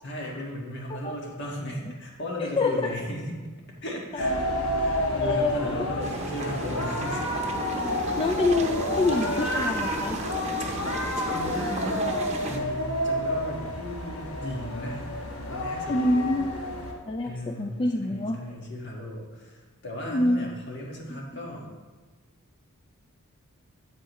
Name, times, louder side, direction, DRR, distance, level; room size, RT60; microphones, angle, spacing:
voice 1, 0.0-3.4 3.8-7.2 10.7-10.9 11.2-12.1 12.4-15.1 15.5-16.4 17.2-21.8, equal, 55° left, -1 dB, 1.6 m, -36 dB
voice 2, 2.4-2.7 5.2-5.7 7.7-10.2 15.9-16.5 17.1-18.4 20.1-20.5, left 2 dB, 25° left, 3 dB, 0.3 m, -26 dB
sound 1, 4.2-16.9, left 1 dB, 70° left, 1.1 m, -30 dB
sound 2, 6.0-12.6, right 2 dB, 30° right, 0.8 m, -34 dB
8.6 x 7.9 x 3.0 m, 1.3 s
head